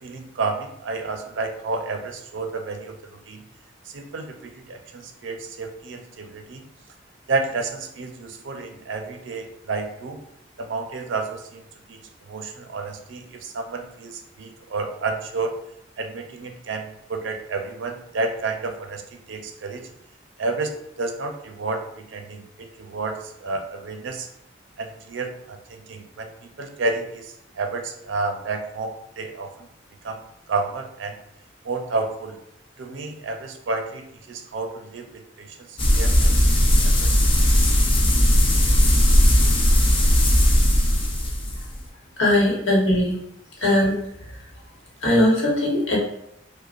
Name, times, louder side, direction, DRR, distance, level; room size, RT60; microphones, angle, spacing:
voice 1, 0.0-3.4 3.9-6.7 7.3-10.2 10.6-11.6 11.9-12.0 12.3-15.5 16.0-19.9 20.4-24.3 24.8-29.7 30.0-30.2 30.5-31.2 31.6-32.4 32.8-36.3 36.7-37.1, right 3 dB, 75° right, 5 dB, 0.5 m, -31 dB
sound 1, 35.8-41.8, equal, 30° left, 0.6 m, -17 dB
voice 2, 42.2-43.1 43.6-44.0 45.0-46.0, left 1 dB, 90° left, -3 dB, 1.0 m, -19 dB
4.9 x 2.1 x 2.4 m, 0.76 s
head